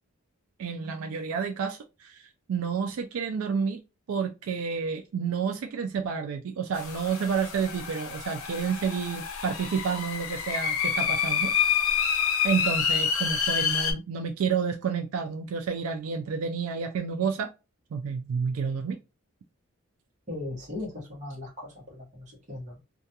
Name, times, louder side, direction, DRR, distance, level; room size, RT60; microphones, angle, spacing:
voice 1, 0.6-3.8 4.1-11.5 12.4-17.5 17.9-19.0, right 6 dB, 75° right, 0.3 m, -30 dB
sound 1, 6.7-13.9, left 7 dB, 80° left, 0.5 m, -28 dB
voice 2, 20.3-22.8, left 2 dB, 35° right, 1.0 m, -38 dB
2.4 x 2.2 x 2.7 m
head